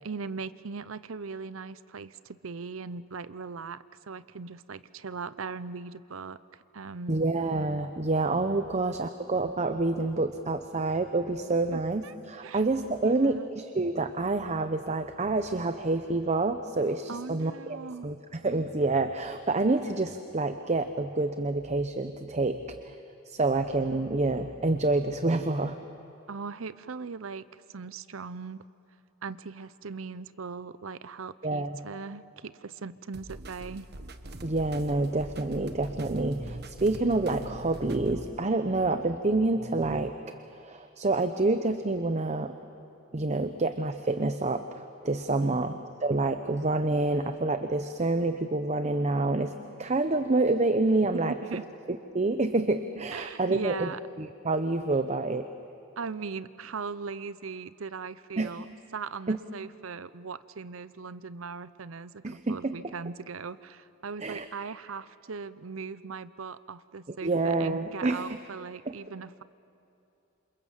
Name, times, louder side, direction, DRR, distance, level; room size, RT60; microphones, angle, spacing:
voice 1, 0.0-7.2 11.7-12.1 12.4-12.7 13.0-13.5 17.1-18.1 26.3-28.7 29.2-33.9 45.3-45.8 51.1-51.6 53.1-54.0 56.0-58.7 58.9-69.4, right 5 dB, 70° right, 16 dB, 0.7 m, -39 dB
voice 2, 7.1-12.0 12.3-17.5 18.0-18.2 18.4-22.6 22.9-23.0 23.3-25.8 31.4-31.8 34.4-40.1 40.6-42.5 43.1-44.6 45.0-45.7 46.0-49.5 49.8-51.3 51.9-53.9 54.2-55.5 58.4-58.5 59.3-59.4 62.2-62.8 64.2-64.5 67.2-68.4, right 2 dB, 35° right, 9 dB, 0.8 m, -27 dB
sound 1, 33.1-38.2, right 1 dB, 50° right, 1.3 m, -44 dB
27.5 x 27.5 x 7.4 m, 2.8 s
head